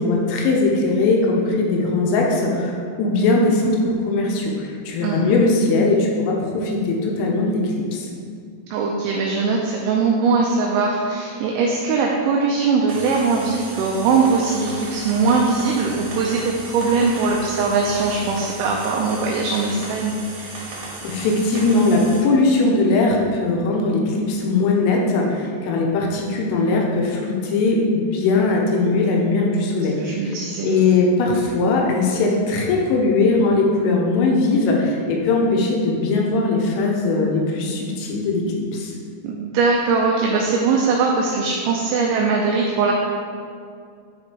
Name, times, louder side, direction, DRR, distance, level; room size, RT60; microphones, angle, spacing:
voice 1, 0.0-8.1 21.0-30.4 30.6-38.4 38.7-38.9, left 3 dB, 85° left, -1 dB, 3.3 m, -20 dB
voice 2, 8.7-20.8 30.0-30.8 39.2-42.9, right 4 dB, 90° right, -1 dB, 2.6 m, -21 dB
sound 1, 12.9-22.2, right 3 dB, 60° right, 2.8 m, -35 dB
9.2 x 5.1 x 3.1 m, 2.3 s
omnidirectional pair, 6.0 m